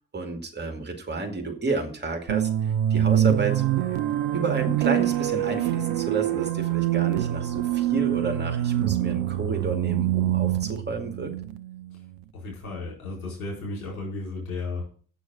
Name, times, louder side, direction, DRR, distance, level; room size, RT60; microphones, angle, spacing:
voice 1, 0.1-2.5 2.9-3.7 4.3-11.3, right 3 dB, 25° right, 3 dB, 2.3 m, -30 dB
sound 1, 2.3-12.2, right 12 dB, 60° right, 0.7 m, -25 dB
Wind instrument woodwind instrument, 3.4-8.6, right 5 dB, 45° left, 3.2 m, -44 dB
voice 2, 12.3-14.9, left 3 dB, 80° left, -3 dB, 4.4 m, -34 dB
8.3 x 6.3 x 8.1 m, 0.43 s
figure-of-eight pair, 45°, 41 cm